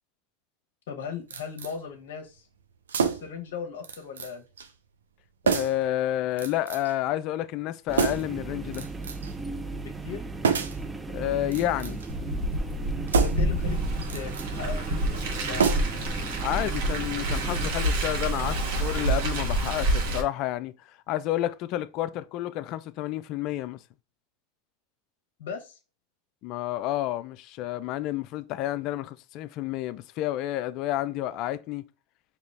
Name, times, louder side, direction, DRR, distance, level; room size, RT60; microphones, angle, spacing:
voice 1, 0.9-2.5 3.0-4.4 9.8-10.2 13.1-13.8 14.1-15.7 25.4-25.8, left 7 dB, 70° left, 0.9 m, -38 dB
sound 1, 1.3-1.7 2.9-3.4 3.8-4.3 4.6-4.7 5.5-5.9 6.4-6.9 7.9-8.4 8.7-9.3 10.4-10.9 11.4-12.1 13.1-13.5 14.0-14.5 15.6-16.1 16.4-16.5, right 6 dB, 90° right, 0.5 m, -28 dB
voice 2, 5.4-8.9 11.1-12.0 16.4-23.8 26.4-31.8, left 13 dB, 55° left, 0.4 m, -30 dB
sound 2, 7.9-17.7, right 3 dB, 15° right, 0.6 m, -36 dB
Car, 12.1-20.2, right 1 dB, 70° right, 1.3 m, -28 dB
5.0 x 2.9 x 3.3 m
hypercardioid pair, 95°, 0 cm